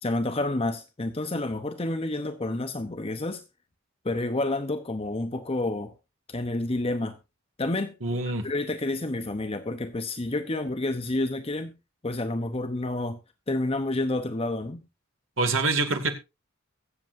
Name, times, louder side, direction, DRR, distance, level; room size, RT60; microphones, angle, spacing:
voice 1, 0.0-3.4 4.0-5.9 6.3-7.2 7.6-7.9 8.4-11.7 12.0-13.2 13.5-14.8, left 2 dB, 30° left, 0.8 m, -29 dB
voice 2, 8.0-8.4 15.4-16.1, right 3 dB, 65° right, 2.3 m, -25 dB
22.5 x 7.6 x 2.6 m
head